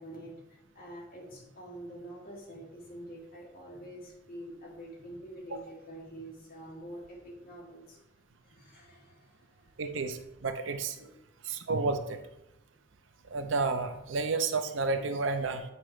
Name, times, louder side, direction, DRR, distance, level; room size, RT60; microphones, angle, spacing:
voice 1, 0.0-8.0 8.4-9.7 11.0-11.1, right 1 dB, 50° left, -5 dB, 2.3 m, -46 dB
voice 2, 9.8-11.0 11.5-12.2 13.3-15.6, right 3 dB, 80° right, 8 dB, 0.6 m, -31 dB
9.5 x 4.9 x 3.1 m, 0.90 s
head